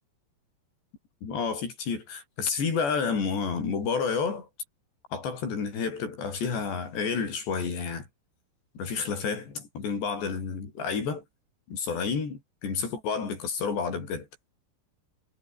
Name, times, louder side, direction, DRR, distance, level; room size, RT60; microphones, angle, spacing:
voice 1, 1.2-4.5 5.1-8.1 8.8-11.2 11.7-14.3, left 5 dB, 90° left, 8.3 m, -30 dB
omnidirectional pair, 4.8 m